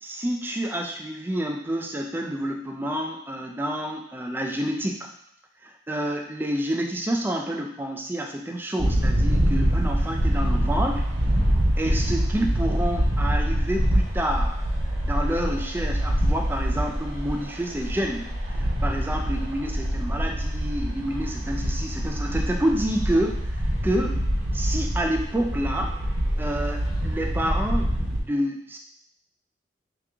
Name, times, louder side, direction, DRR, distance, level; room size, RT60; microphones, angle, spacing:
voice 1, 0.0-5.1 5.6-11.0 11.8-14.6 15.0-18.3 18.5-23.4 23.8-24.3 24.5-25.9 26.4-28.8, right 1 dB, 10° right, 2 dB, 0.3 m, -28 dB
sound 1, 8.8-28.2, equal, 80° right, 1.2 m, -25 dB
3.5 x 2.9 x 3.5 m, 0.70 s
head